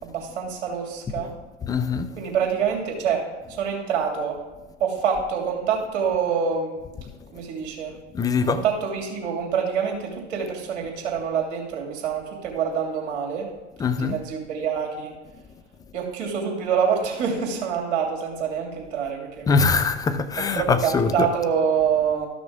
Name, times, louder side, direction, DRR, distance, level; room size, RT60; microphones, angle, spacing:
voice 1, 0.0-1.3 2.1-3.2 3.5-4.4 4.8-6.8 7.3-7.9 8.4-13.5 14.0-15.1 15.9-19.5 20.6-22.3, right 7 dB, 65° right, 2.7 m, -26 dB
voice 2, 1.7-2.1 8.1-8.6 13.8-14.2 19.5-21.3, left 5 dB, 10° left, 0.4 m, -22 dB
13.0 x 6.0 x 3.7 m
hypercardioid pair, 95°, 36 cm